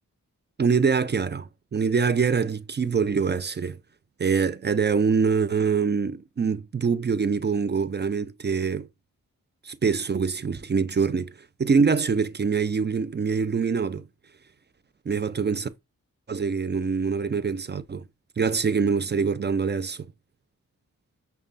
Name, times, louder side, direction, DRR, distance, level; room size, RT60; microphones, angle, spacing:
voice 1, 0.6-3.8 4.2-8.9 9.6-11.3 11.6-14.0 15.1-15.7 16.3-18.0 18.4-20.1, right 5 dB, 30° right, 0.5 m, -24 dB
6.4 x 2.3 x 2.5 m
cardioid pair, 45°, 34 cm